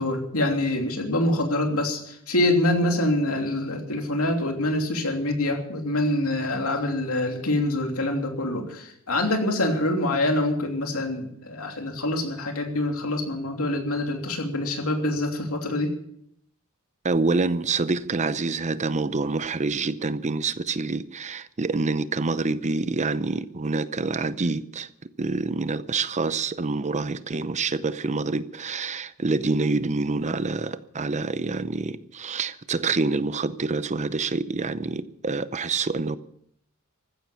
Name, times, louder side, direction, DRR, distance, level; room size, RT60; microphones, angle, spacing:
voice 1, 0.0-15.9, left 1 dB, 75° left, 3.1 m, -25 dB
voice 2, 17.0-24.9 25.2-36.2, right 3 dB, 35° right, 0.7 m, -27 dB
15.5 x 12.5 x 7.0 m
head